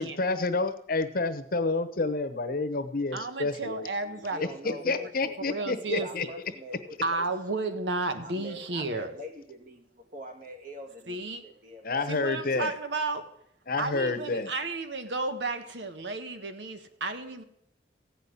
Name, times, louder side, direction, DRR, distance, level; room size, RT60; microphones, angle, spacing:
voice 1, 0.0-3.9 4.6-6.2 11.8-12.7 13.7-14.5, left 3 dB, 55° left, 10 dB, 1.0 m, -29 dB
voice 2, 3.1-5.1 5.5-6.3 7.0-9.1 11.0-11.4 12.1-13.3 13.8-17.4, right 3 dB, 75° right, 8 dB, 1.3 m, -33 dB
voice 3, 4.0-7.3 8.2-12.1, left 1 dB, 50° right, 5 dB, 2.0 m, -44 dB
15.0 x 5.8 x 9.6 m, 0.72 s
head